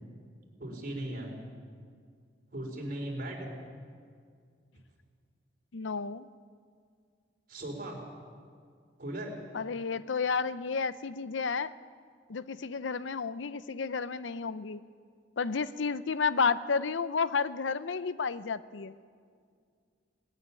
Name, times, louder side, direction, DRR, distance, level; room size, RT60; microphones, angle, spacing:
voice 1, 0.6-1.4 2.5-3.5 7.5-8.0 9.0-9.4, right 1 dB, 50° right, 0 dB, 4.4 m, -37 dB
voice 2, 5.7-6.3 9.5-11.7 12.3-14.8 15.4-19.0, left 5 dB, 90° left, 15 dB, 0.7 m, -31 dB
19.5 x 13.5 x 9.8 m, 2.1 s
head